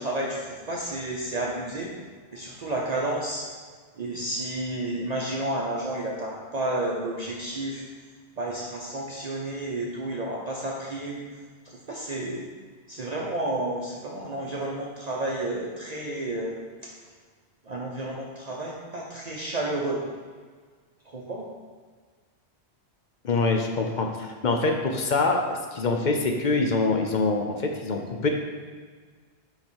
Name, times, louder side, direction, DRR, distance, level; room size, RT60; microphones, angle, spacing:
voice 1, 0.0-1.9 2.3-3.5 4.0-7.8 8.4-11.2 11.7-12.5 12.9-16.5 16.8-16.9 17.7-20.0 21.1-21.4, right 1 dB, 45° right, -3 dB, 0.8 m, -31 dB
voice 2, 23.2-28.3, left 3 dB, 50° left, 3 dB, 0.8 m, -25 dB
5.8 x 4.9 x 4.5 m, 1.5 s
omnidirectional pair, 1.1 m